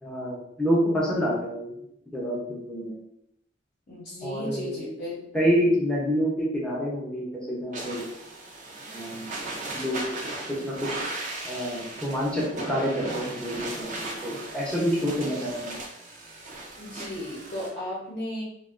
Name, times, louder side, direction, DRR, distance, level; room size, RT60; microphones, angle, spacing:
voice 1, 0.0-1.7 2.1-3.0 4.2-4.8 5.3-8.0 8.9-9.3 9.7-10.0 10.5-10.9 11.4-15.8, equal, 5° left, -6 dB, 0.6 m, -27 dB
voice 2, 3.9-5.2 16.8-18.4, left 1 dB, 45° left, -6 dB, 0.7 m, -35 dB
sound 1, 7.7-17.7, right 2 dB, 40° right, 0.5 m, -37 dB
2.5 x 2.2 x 2.4 m, 0.77 s
head